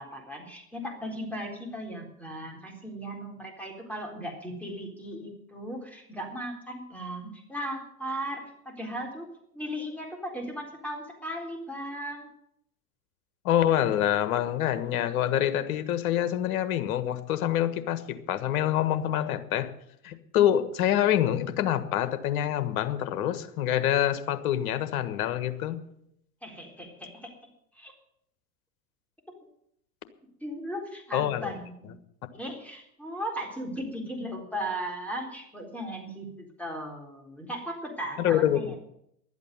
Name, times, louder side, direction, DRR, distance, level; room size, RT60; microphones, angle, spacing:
voice 1, 0.0-12.3 26.4-27.3 27.7-27.9 30.4-32.0 32.3-38.8, equal, 5° left, 0 dB, 3.9 m, -37 dB
voice 2, 13.4-19.7 20.0-25.8 31.1-31.5 38.2-38.7, left 11 dB, 65° left, 11 dB, 1.5 m, -26 dB
12.0 x 8.3 x 9.3 m, 0.74 s
hypercardioid pair, 95°, 45 cm